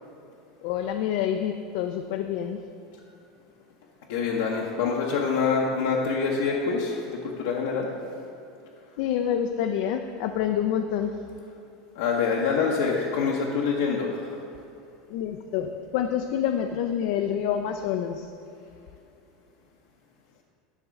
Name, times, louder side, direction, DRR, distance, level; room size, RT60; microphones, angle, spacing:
voice 1, 0.6-2.6 9.0-11.1 15.1-18.3, left 9 dB, 60° left, 6 dB, 0.4 m, -27 dB
voice 2, 4.1-7.9 11.9-14.4, left 5 dB, 80° left, -2 dB, 0.9 m, -26 dB
11.0 x 3.6 x 6.4 m, 2.7 s
supercardioid pair, 155°, 0 cm